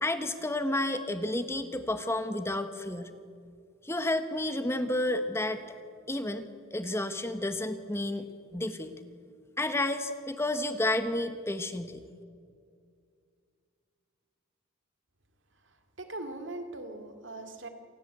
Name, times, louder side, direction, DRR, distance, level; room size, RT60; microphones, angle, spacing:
voice 1, 0.0-3.1 3.8-5.6 6.1-8.3 8.5-8.9 9.6-12.0, left 1 dB, 15° left, 9 dB, 1.1 m, -31 dB
voice 2, 16.0-17.7, right 2 dB, 65° right, 6 dB, 2.4 m, -40 dB
27.5 x 19.5 x 8.0 m, 2.2 s
head